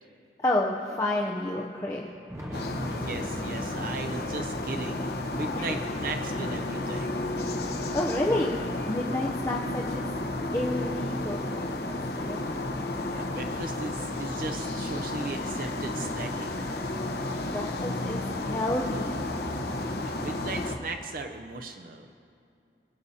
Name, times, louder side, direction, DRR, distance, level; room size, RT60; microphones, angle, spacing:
voice 1, 0.4-2.1 5.6-5.7 7.5-8.6 8.8-10.1 10.5-12.4 17.5-19.2, left 1 dB, 15° left, -2 dB, 0.5 m, -30 dB
Thunder, 1.8-10.3 11.0-12.7 13.8-13.9 14.5-14.6 16.5-16.6 17.9-18.0 19.6-19.7, equal, 15° right, 1.2 m, -45 dB
sound 1, 2.5-20.8, left 2 dB, 70° left, 0.9 m, -32 dB
voice 2, 3.0-7.2 13.1-16.7 20.0-22.1, right 3 dB, 50° right, 6 dB, 0.5 m, -37 dB
23.5 x 8.4 x 2.8 m, 2.5 s
head